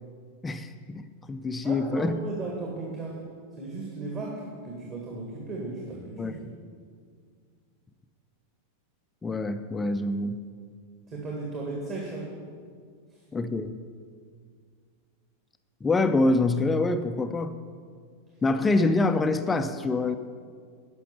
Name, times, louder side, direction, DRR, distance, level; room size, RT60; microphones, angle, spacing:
voice 1, 0.4-1.0 1.3-2.1 6.2-6.3 9.2-10.4 13.3-13.8 15.8-17.5 18.4-20.2, left 2 dB, 15° left, 9 dB, 0.4 m, -25 dB
voice 2, 1.5-3.2 3.6-6.3 11.1-12.3, right 3 dB, 30° right, -2 dB, 1.9 m, -35 dB
11.5 x 6.1 x 7.1 m, 2.1 s
figure-of-eight pair, 90°, 0 cm